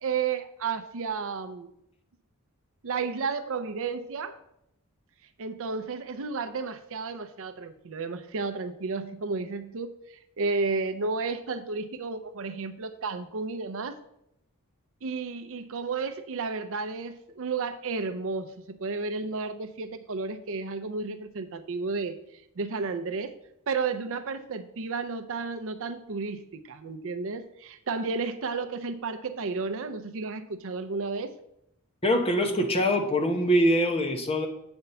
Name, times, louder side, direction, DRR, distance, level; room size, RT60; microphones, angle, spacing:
voice 1, 0.0-1.7 2.8-4.3 5.4-14.0 15.0-22.2 22.6-23.3 23.7-31.3, right 4 dB, 60° right, 10 dB, 0.5 m, -32 dB
voice 2, 32.0-34.5, equal, 25° left, 4 dB, 0.9 m, -23 dB
8.1 x 4.4 x 6.8 m, 0.78 s
head